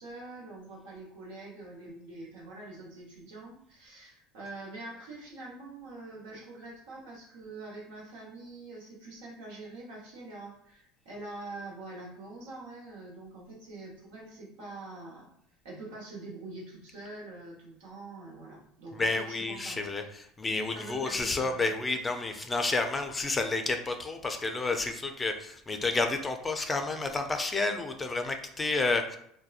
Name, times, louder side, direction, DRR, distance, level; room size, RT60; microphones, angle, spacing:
voice 1, 0.0-15.3 15.6-19.9 20.7-21.7, right 2 dB, 85° right, -4 dB, 0.9 m, -45 dB
voice 2, 18.9-29.2, left 3 dB, 20° left, 5 dB, 0.4 m, -30 dB
2.8 x 2.1 x 2.4 m, 0.70 s
supercardioid pair, 90°, 0 cm